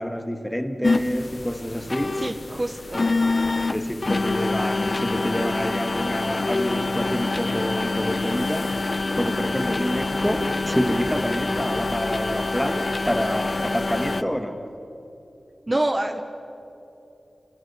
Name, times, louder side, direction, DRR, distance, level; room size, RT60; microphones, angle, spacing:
voice 1, 0.0-2.3 3.7-8.7 9.2-14.7, equal, 5° left, 1.8 m, -27 dB
sound 1, 0.8-14.2, left 3 dB, 50° left, 0.7 m, -26 dB
voice 2, 2.2-3.2 15.7-16.2, right 1 dB, 30° right, 1.2 m, -26 dB
28.0 x 14.5 x 9.8 m
wide cardioid pair, 60°, 0 cm